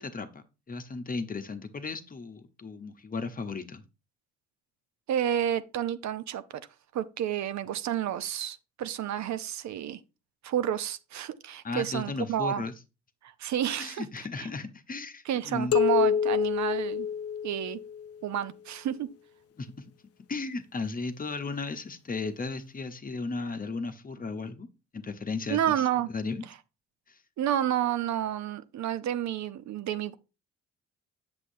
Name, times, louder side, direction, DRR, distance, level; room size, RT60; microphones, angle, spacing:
voice 1, 0.0-3.8 11.6-12.7 13.8-15.7 19.6-19.7 20.3-24.7 24.9-26.4 27.1-27.2, left 3 dB, 30° left, 0.9 m, -35 dB
voice 2, 5.1-6.4 6.9-10.0 10.4-12.6 13.2-14.0 14.4-14.5 15.3-17.1 17.4-17.8 18.2-19.1 25.5-26.1 27.4-30.2, right 10 dB, 65° right, 0.6 m, -30 dB
sound 1, 15.7-18.1, left 8 dB, 55° left, 0.6 m, -27 dB
8.3 x 7.0 x 2.7 m
cardioid pair, 90°, 30 cm